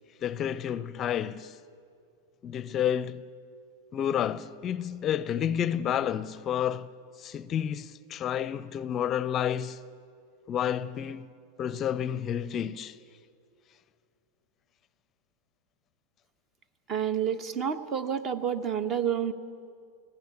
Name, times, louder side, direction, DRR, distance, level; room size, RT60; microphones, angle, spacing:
voice 1, 0.2-1.5 2.4-3.2 3.9-6.9 7.2-9.8 10.5-11.3 11.6-13.0, left 9 dB, 35° left, 0.5 m, -30 dB
voice 2, 16.9-19.3, right 8 dB, 40° right, 1.1 m, -29 dB
18.0 x 16.5 x 9.5 m
hypercardioid pair, 95°, 0 cm